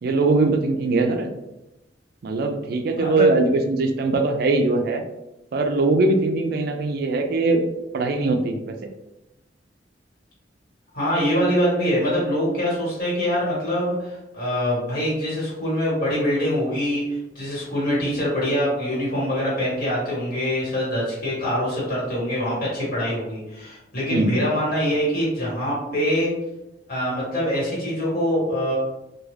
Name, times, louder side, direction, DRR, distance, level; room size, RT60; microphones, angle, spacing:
voice 1, 0.0-1.3 2.2-5.0 5.5-7.6 7.9-8.7 24.1-24.3, right 3 dB, 55° right, 5 dB, 0.3 m, -21 dB
voice 2, 3.0-3.3 10.9-26.3 26.9-28.8, equal, 50° left, -7 dB, 1.4 m, -24 dB
2.3 x 2.3 x 3.2 m, 0.92 s
head